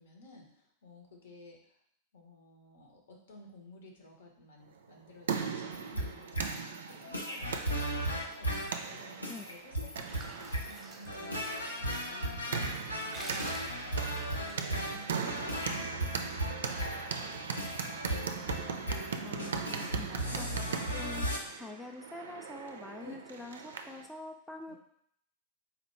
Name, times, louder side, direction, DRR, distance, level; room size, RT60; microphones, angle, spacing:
voice 1, 0.0-1.6 2.1-8.6 8.9-12.8 14.4-17.4 20.2-20.9 23.0-23.2 24.7-24.8, left 1 dB, 65° left, 1 dB, 1.0 m, -54 dB
steps in corridor, 4.8-24.1, right 6 dB, 65° right, 0.4 m, -39 dB
sound 1, 5.7-21.4, right 1 dB, 85° left, 0.7 m, -36 dB
sound 2, 9.7-11.9 12.2-12.3 12.8-15.2, right 2 dB, 15° right, 0.8 m, -49 dB
voice 2, 19.2-20.4 20.9-24.8, left 2 dB, 5° left, 3 dB, 0.4 m, -45 dB
4.1 x 2.9 x 4.3 m, 0.69 s
figure-of-eight pair, 90°, 0 cm